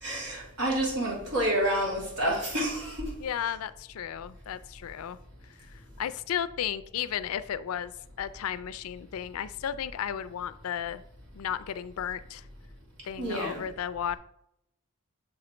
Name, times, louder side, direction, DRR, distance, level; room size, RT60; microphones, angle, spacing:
voice 1, 0.0-3.1 13.2-13.6, right 1 dB, 80° right, 2.5 m, -29 dB
voice 2, 3.2-5.2 6.0-7.9 8.2-11.0 11.3-12.5 13.0-14.2, left 9 dB, 75° left, 0.4 m, -34 dB
6.9 x 3.9 x 4.3 m
head